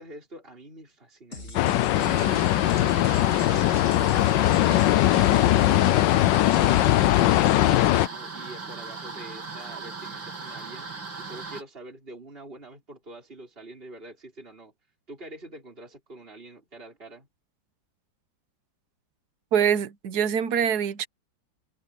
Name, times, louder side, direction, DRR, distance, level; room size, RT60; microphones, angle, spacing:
voice 1, 0.0-14.7 15.1-17.3, right 2 dB, 30° right, 5.7 m, -46 dB
sound 1, 1.3-6.9, left 3 dB, 40° left, 3.7 m, -41 dB
sound 2, 1.5-8.1, left 15 dB, 75° left, 1.2 m, -20 dB
sound 3, 1.9-11.6, right 4 dB, 80° right, 4.5 m, -38 dB
voice 2, 19.5-21.1, right 8 dB, 60° right, 1.5 m, -24 dB
omnidirectional pair, 2.1 m